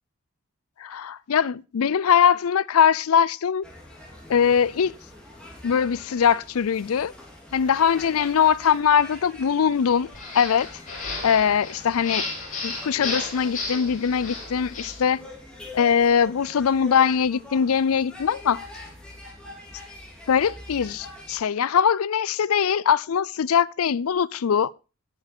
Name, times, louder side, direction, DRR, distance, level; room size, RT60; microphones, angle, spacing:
voice 1, 0.8-3.6 4.3-4.9 5.6-7.1 7.5-10.1 10.3-10.7 11.2-12.2 12.6-15.2 15.7-18.6 20.3-24.7, left 7 dB, 80° left, 0.4 m, -21 dB
sound 1, 3.6-21.4, left 1 dB, 5° left, 3.0 m, -44 dB
sound 2, 10.1-15.0, left 3 dB, 35° left, 7.8 m, -33 dB
16.0 x 6.8 x 4.3 m
head